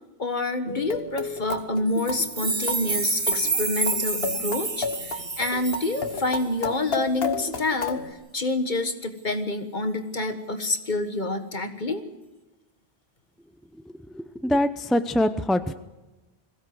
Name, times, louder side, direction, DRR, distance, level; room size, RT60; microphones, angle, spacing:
voice 1, 0.2-8.0 8.3-12.0, left 2 dB, 50° left, 8 dB, 1.7 m, -27 dB
sound 1, 0.7-8.1, left 4 dB, 70° left, 1.5 m, -32 dB
sound 2, 2.0-6.4, right 3 dB, 25° right, 1.0 m, -29 dB
voice 2, 13.8-15.7, left 1 dB, ahead, 10 dB, 0.6 m, -24 dB
21.5 x 16.5 x 7.9 m, 1.1 s
omnidirectional pair, 1.0 m